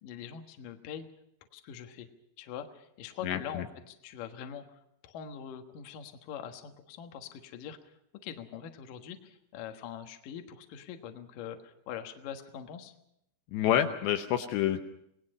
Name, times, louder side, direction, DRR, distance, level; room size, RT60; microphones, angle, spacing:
voice 1, 0.0-1.1 1.5-2.1 2.4-7.9 8.2-12.9, left 8 dB, 60° left, 5 dB, 2.5 m, -43 dB
voice 2, 3.2-3.6 13.5-14.8, left 11 dB, 75° left, 7 dB, 3.0 m, -28 dB
27.5 x 19.5 x 5.4 m, 0.77 s
omnidirectional pair, 5.2 m